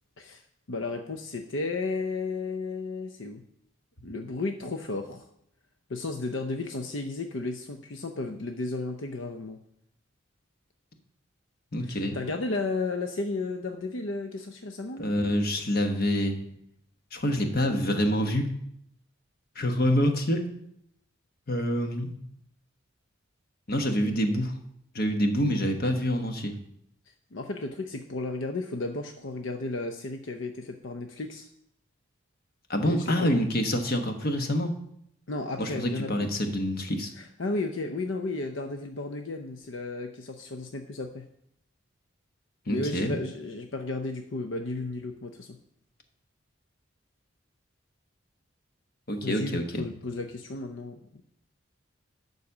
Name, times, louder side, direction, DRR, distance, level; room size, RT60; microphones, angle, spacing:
voice 1, 0.7-3.4 4.0-5.3 5.9-9.6 11.8-15.1 27.3-31.5 32.8-33.3 35.3-36.3 37.1-41.3 42.7-45.6 49.2-51.2, left 3 dB, 70° left, 5 dB, 0.7 m, -33 dB
voice 2, 11.7-12.2 15.0-16.4 17.1-18.5 19.5-20.4 21.5-22.1 23.7-24.5 24.9-26.6 32.7-34.7 35.6-37.1 42.7-43.2 49.1-49.8, equal, 50° left, 5 dB, 1.1 m, -26 dB
11.5 x 4.1 x 7.1 m, 0.73 s
head